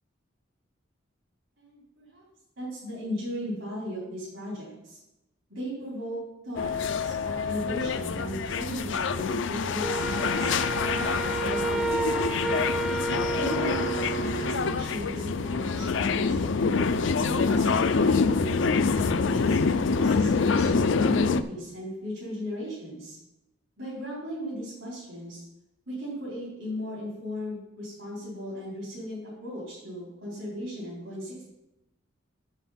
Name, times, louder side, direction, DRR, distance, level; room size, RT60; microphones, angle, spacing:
voice 1, 1.6-2.2 2.6-5.0 5.5-6.7 7.0-10.5 10.9-12.6 13.3-16.5 17.1-20.7 21.1-23.2 23.8-25.4 25.9-31.4, equal, 80° right, -7 dB, 4.1 m, -36 dB
sound 1, 6.6-21.4, left 4 dB, 65° left, 0.5 m, -26 dB
Wind instrument woodwind instrument, 9.8-14.5, right 2 dB, 5° right, 0.4 m, -31 dB
Wind instrument woodwind instrument 2, 9.9-14.8, right 6 dB, 30° right, 0.7 m, -38 dB
7.7 x 7.4 x 5.7 m, 0.91 s
head